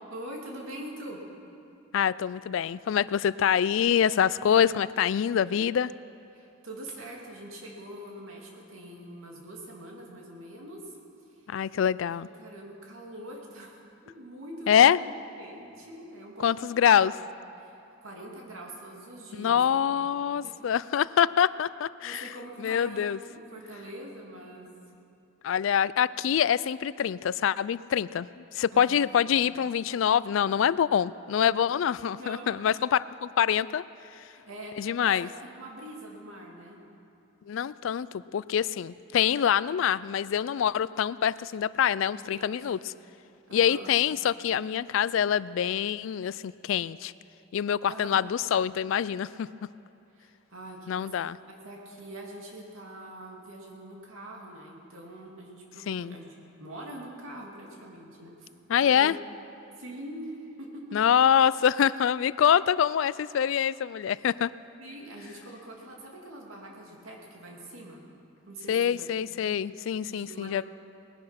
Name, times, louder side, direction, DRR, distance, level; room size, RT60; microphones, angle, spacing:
voice 1, 0.1-1.2 6.3-10.9 11.3-11.5 12.4-15.1 15.4-16.7 16.9-17.2 17.6-17.7 18.0-19.6 19.9-20.6 22.0-24.7 28.7-29.4 32.2-32.5 34.3-36.8 42.1-42.9 43.5-43.9 47.8-48.2 50.1-51.2 51.4-58.5 58.8-59.2 59.8-60.8 64.8-68.0 68.5-69.3 70.0-70.6, right 1 dB, 85° right, -1 dB, 2.6 m, -44 dB
voice 2, 1.9-5.9 11.5-12.3 14.7-15.0 16.4-17.1 19.4-22.3 22.6-23.2 25.4-33.8 34.2-34.3 34.8-35.3 37.5-42.8 43.5-47.1 47.5-49.5 50.9-51.4 55.9-56.2 58.7-59.2 60.9-64.5 68.7-70.6, left 8 dB, 70° left, 18 dB, 0.3 m, -25 dB
19.5 x 10.5 x 5.8 m, 2.8 s
head